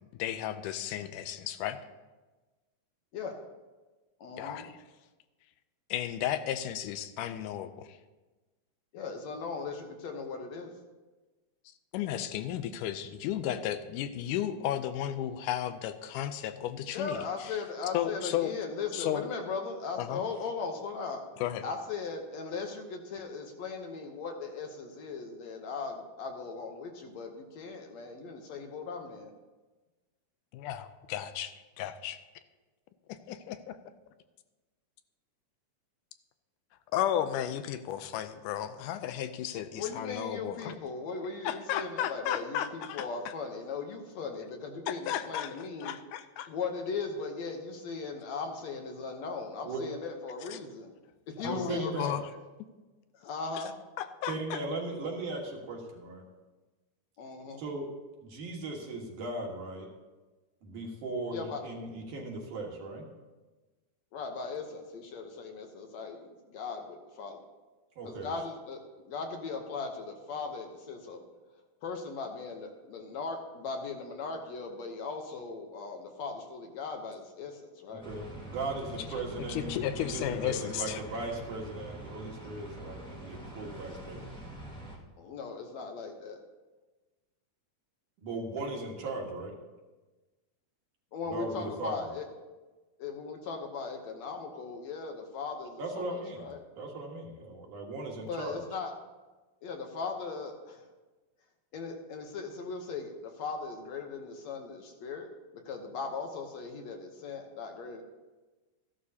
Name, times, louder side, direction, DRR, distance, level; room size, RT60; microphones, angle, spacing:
voice 1, 0.1-1.8 4.4-4.7 5.9-8.0 11.9-17.5 17.9-18.6 18.9-19.2 20.0-20.2 21.4-21.6 30.5-32.2 33.1-33.8 36.9-40.7 41.4-43.1 44.9-45.5 45.8-46.5 50.5-50.6 51.4-52.2 54.0-54.6 79.5-81.0, left 11 dB, 90° left, 11 dB, 2.2 m, -34 dB
voice 2, 4.2-4.7 8.9-10.7 16.9-21.3 21.6-29.3 39.7-46.0 46.5-50.9 51.4-52.2 53.1-53.8 57.2-57.6 61.3-61.6 64.1-67.4 68.0-71.2 71.8-78.0 85.2-86.4 91.1-92.2 93.0-96.6 98.2-98.9 99.6-100.8 101.7-105.3 105.7-108.0, left 4 dB, 70° left, 4 dB, 2.0 m, -38 dB
voice 3, 51.4-52.2 54.2-56.2 57.6-57.9 58.2-59.9 60.6-61.4 61.6-63.0 68.0-68.3 77.9-84.3 88.2-89.5 91.2-92.1 95.8-96.5 96.8-98.6, right 2 dB, 75° right, 0 dB, 3.1 m, -38 dB
sound 1, 78.0-85.0, right 1 dB, 5° left, 0.3 m, -45 dB
14.5 x 11.5 x 2.8 m, 1.2 s
omnidirectional pair, 3.6 m